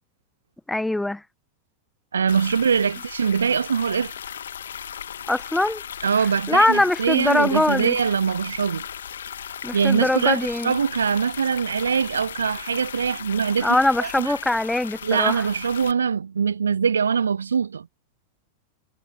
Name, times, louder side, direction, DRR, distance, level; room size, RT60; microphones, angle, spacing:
voice 1, 0.7-1.2 5.3-5.8 6.5-8.0 9.6-10.8 13.6-15.4, left 2 dB, 5° left, 1.1 m, -22 dB
voice 2, 2.1-4.2 6.0-8.9 9.7-14.3 15.0-17.9, right 6 dB, 70° right, 0.3 m, -23 dB
sound 1, 2.3-15.9, left 9 dB, 65° left, 1.5 m, -37 dB
figure-of-eight pair, 90°, 0 cm